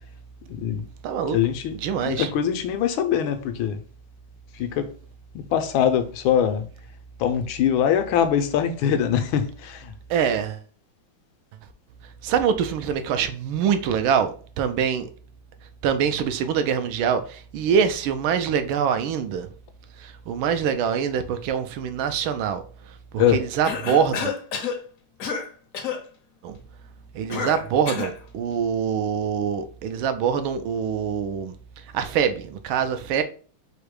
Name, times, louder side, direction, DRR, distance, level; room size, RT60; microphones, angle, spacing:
voice 1, 0.5-0.8 1.3-3.8 4.6-4.9 5.3-6.6 7.2-9.9 23.2-23.4, left 9 dB, 85° left, 1.4 m, -23 dB
voice 2, 1.0-1.4 1.7-2.3 10.1-10.6 12.2-15.1 15.8-19.5 20.0-22.6 23.1-24.3 26.4-26.6 27.1-31.5 31.9-33.2, right 7 dB, 80° right, 1.4 m, -24 dB
Cough, 23.6-24.8 25.2-25.5 25.7-26.0 27.3-28.2, left 6 dB, 65° left, 0.8 m, -29 dB
4.9 x 2.1 x 4.7 m
omnidirectional pair, 2.2 m